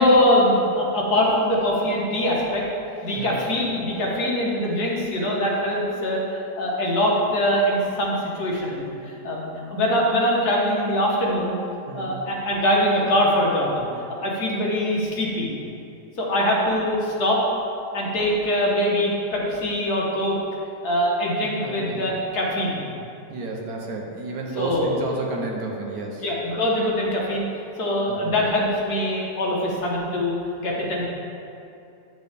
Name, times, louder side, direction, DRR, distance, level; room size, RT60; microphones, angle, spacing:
voice 1, 0.0-2.6 3.0-6.2 6.6-11.6 11.9-13.9 14.2-15.5 16.2-17.4 17.9-20.4 20.8-22.9 24.6-25.0 26.2-27.5 27.8-30.3 30.6-31.1, left 1 dB, 65° left, -3 dB, 1.7 m, -23 dB
voice 2, 21.6-22.0 23.3-26.2 28.1-28.3, right 3 dB, 65° right, 0 dB, 1.3 m, -31 dB
9.4 x 6.0 x 3.5 m, 2.7 s
omnidirectional pair, 1.8 m